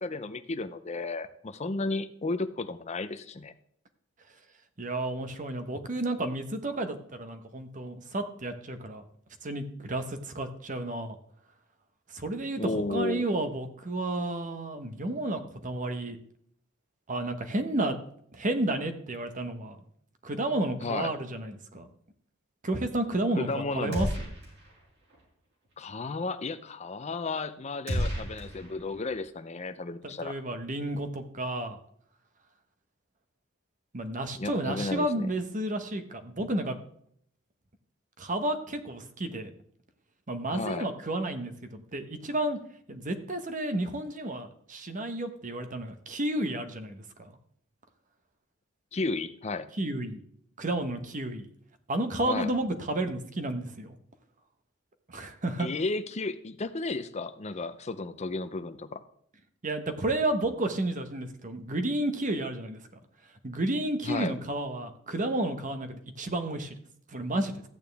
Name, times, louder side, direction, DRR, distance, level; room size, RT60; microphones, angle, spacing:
voice 1, 0.0-3.5 12.6-13.2 20.8-21.1 23.4-24.1 25.8-30.3 34.4-35.3 40.5-40.9 48.9-49.7 52.2-52.5 55.6-59.0 64.0-64.3, left 3 dB, 35° left, 11 dB, 0.6 m, -33 dB
voice 2, 4.8-9.0 9.4-11.2 12.1-16.2 17.1-18.0 18.3-19.8 20.2-21.9 22.6-24.3 30.0-31.8 33.9-36.8 38.2-39.5 40.3-42.6 42.9-47.3 49.8-50.2 50.6-51.5 51.9-53.9 55.1-55.7 59.6-62.8 63.4-66.7 67.1-67.5, right 1 dB, 40° right, 7 dB, 1.1 m, -31 dB
sound 1, 23.9-24.8 25.1-25.2 27.9-29.2, equal, 60° right, 4.5 m, -33 dB
13.5 x 9.0 x 3.5 m, 0.66 s
head